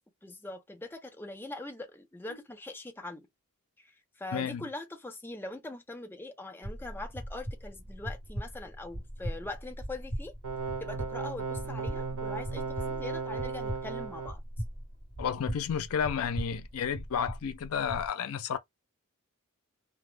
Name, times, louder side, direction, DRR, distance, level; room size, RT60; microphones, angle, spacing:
voice 1, 0.2-3.3 3.8-3.9 4.2-10.3 10.8-12.6 12.9-14.4, left 2 dB, 10° left, 0.5 m, -42 dB
voice 2, 4.3-4.6 15.2-18.6, left 7 dB, 70° left, 0.4 m, -31 dB
sound 1, 6.6-18.1, equal, 40° left, 1.1 m, -40 dB
sound 2, 10.4-14.3, right 5 dB, 70° right, 0.6 m, -36 dB
2.3 x 2.0 x 3.1 m
head